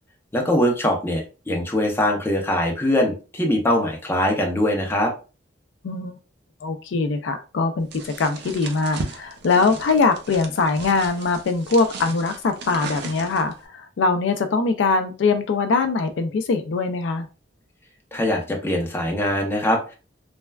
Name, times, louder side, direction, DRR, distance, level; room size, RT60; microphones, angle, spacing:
voice 1, 0.3-5.1 18.1-19.9, left 1 dB, 15° left, 1 dB, 0.6 m, -22 dB
voice 2, 6.6-17.3, left 4 dB, 75° left, 7 dB, 0.4 m, -22 dB
sound 1, 7.9-13.6, right 3 dB, 65° right, 0.5 m, -36 dB
3.2 x 2.2 x 2.2 m, 0.32 s
head